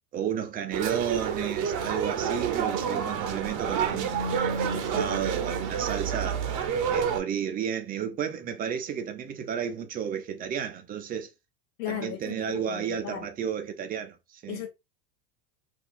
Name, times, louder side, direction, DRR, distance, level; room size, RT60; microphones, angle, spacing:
voice 1, 0.1-6.4 6.9-11.3 11.9-14.6, right 8 dB, 20° right, 0.4 m, -32 dB
sound 1, 0.7-7.2, right 7 dB, 40° right, 0.8 m, -29 dB
voice 2, 11.8-13.3 14.5-14.7, left 11 dB, 70° left, 0.9 m, -36 dB
2.6 x 2.4 x 3.7 m
hypercardioid pair, 100°, 49 cm